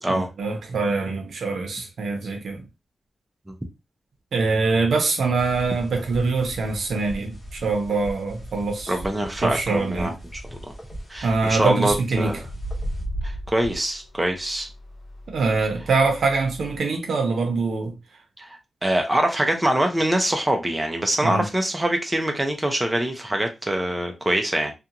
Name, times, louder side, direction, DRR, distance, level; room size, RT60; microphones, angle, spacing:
voice 1, 0.1-2.7 4.3-8.9 9.4-10.1 11.2-12.4 15.3-18.0 21.2-21.5, right 4 dB, 90° right, 0.7 m, -24 dB
sound 1, 5.4-13.0, equal, 25° left, 0.8 m, -39 dB
voice 2, 8.9-10.6 11.1-12.4 13.2-14.7 18.4-18.5 18.8-24.7, right 1 dB, 10° right, 0.5 m, -24 dB
sound 2, 10.9-11.3 12.4-16.8, equal, 70° left, 0.9 m, -35 dB
2.5 x 2.3 x 2.8 m
wide cardioid pair, 165°, 0 cm